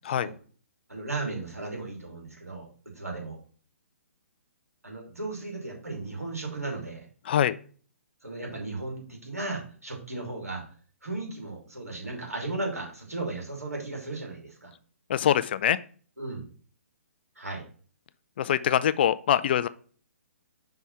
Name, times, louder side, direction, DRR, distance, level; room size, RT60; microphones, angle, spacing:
voice 1, 0.9-2.7 3.0-3.4 4.8-7.1 8.2-10.6 11.0-14.7 16.2-16.5 17.4-17.6, right 2 dB, 85° right, -1 dB, 2.7 m, -35 dB
voice 2, 15.1-15.8 18.4-19.7, left 10 dB, 45° left, 15 dB, 0.4 m, -24 dB
5.7 x 3.5 x 5.5 m, 0.42 s
figure-of-eight pair, 130°, 8 cm